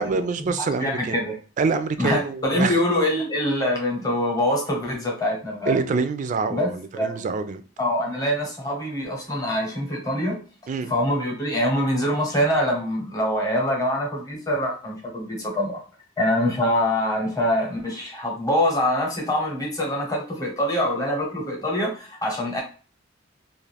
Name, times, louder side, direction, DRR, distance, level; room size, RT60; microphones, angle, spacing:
voice 1, 0.0-1.2 1.6-2.8 5.7-7.6 10.7-10.9, right 4 dB, 40° right, 0.3 m, -26 dB
voice 2, 0.6-1.3 2.0-5.8 6.5-7.2 7.8-10.4 10.9-15.8 16.2-22.6, left 1 dB, 20° left, 0.9 m, -24 dB
2.4 x 2.4 x 3.2 m
head